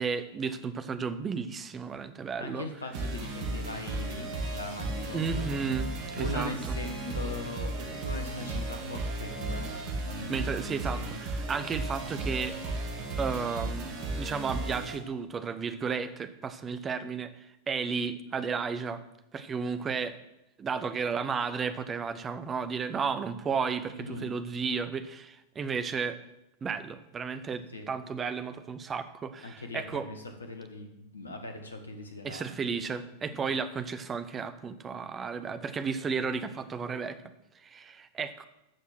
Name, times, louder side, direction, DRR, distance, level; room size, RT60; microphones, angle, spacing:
voice 1, 0.0-2.6 5.1-6.5 10.3-12.6 13.2-13.9 14.2-17.3 17.7-19.0 19.3-20.2 20.6-26.2 26.6-30.1 32.2-37.2 37.6-38.4, right 5 dB, 20° right, 11 dB, 0.9 m, -33 dB
voice 2, 2.4-5.5 6.2-9.7 10.0-11.2 23.9-24.3 27.7-27.9 29.4-32.6 33.4-33.5, left 2 dB, 75° left, 5 dB, 1.8 m, -40 dB
sound 1, 2.9-15.0, right 2 dB, 45° right, 2.0 m, -35 dB
13.0 x 7.1 x 6.1 m, 0.90 s
figure-of-eight pair, 90°, 0 cm